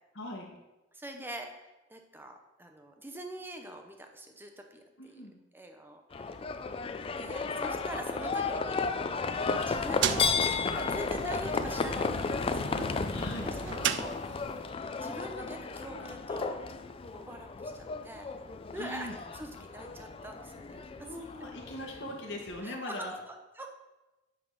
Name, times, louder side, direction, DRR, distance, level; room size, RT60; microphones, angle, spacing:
voice 1, 0.1-0.5 5.0-5.4 13.1-13.5 18.7-19.2 21.0-23.2, left 1 dB, 85° left, 0 dB, 1.3 m, -40 dB
voice 2, 0.9-6.5 7.2-9.2 9.5-13.0 13.4-14.2 15.0-16.6 17.1-18.3 18.7-19.1 19.3-21.2 22.6-23.8, right 1 dB, 10° right, 4 dB, 0.7 m, -44 dB
Livestock farm animals working animals, 6.1-22.6, left 4 dB, 30° left, 0.3 m, -34 dB
sound 1, 9.6-14.7, right 9 dB, 70° right, 0.3 m, -37 dB
8.7 x 3.6 x 5.2 m, 1.0 s
head